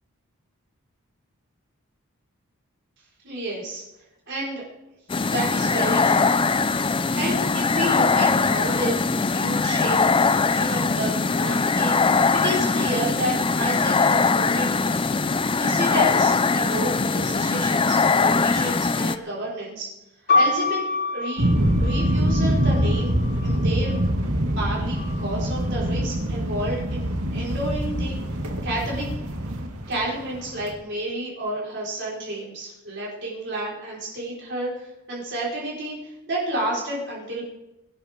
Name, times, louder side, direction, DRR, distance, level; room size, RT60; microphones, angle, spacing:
voice 1, 3.2-3.8 4.3-4.6 5.3-6.3 7.1-14.7 15.6-19.9 20.3-20.8 21.1-21.5 21.8-23.1 23.4-24.0 24.5-28.2 28.6-29.1 29.9-36.0 36.3-37.4, right 1 dB, 55° right, -6 dB, 4.7 m, -30 dB
sound 1, 5.1-19.2, left 4 dB, 25° left, 0.4 m, -21 dB
sound 2, 20.3-24.1 24.9-25.7, left 3 dB, 50° left, 4.5 m, -27 dB
sound 3, 21.4-30.7, equal, 90° right, 2.3 m, -24 dB
23.0 x 12.0 x 3.7 m, 0.96 s
head